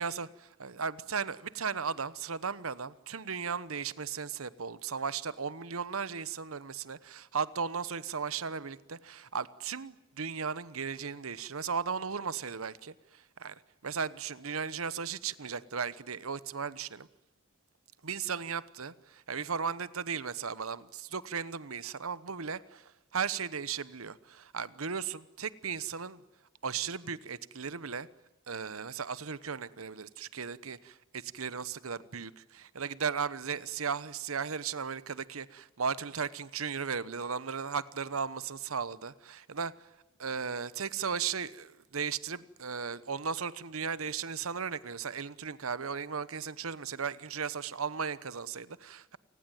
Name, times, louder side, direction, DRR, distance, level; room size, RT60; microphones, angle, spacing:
voice 1, 0.6-17.1 18.0-26.2 26.6-28.1 28.5-39.9 40.2-49.2, right 6 dB, 85° right, 17 dB, 1.0 m, -36 dB
28.5 x 20.0 x 9.2 m, 0.94 s
head